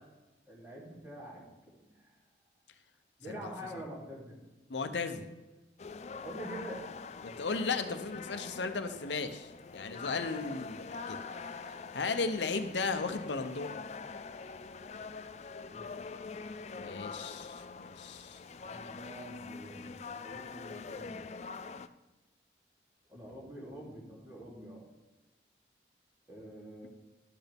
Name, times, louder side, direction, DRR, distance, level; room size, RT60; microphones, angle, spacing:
voice 1, 0.5-2.1 3.2-4.4 6.2-6.8 15.7-15.9 18.5-21.3 23.1-24.8 26.3-26.9, right 1 dB, 15° right, -5 dB, 2.8 m, -46 dB
voice 2, 3.3-3.8 4.7-5.3 7.2-11.6 11.9-13.8 16.7-18.4, left 4 dB, 90° left, 8 dB, 0.8 m, -36 dB
sound 1, 5.8-21.9, left 4 dB, 40° left, 0.3 m, -44 dB
12.0 x 8.2 x 3.5 m, 1.1 s
head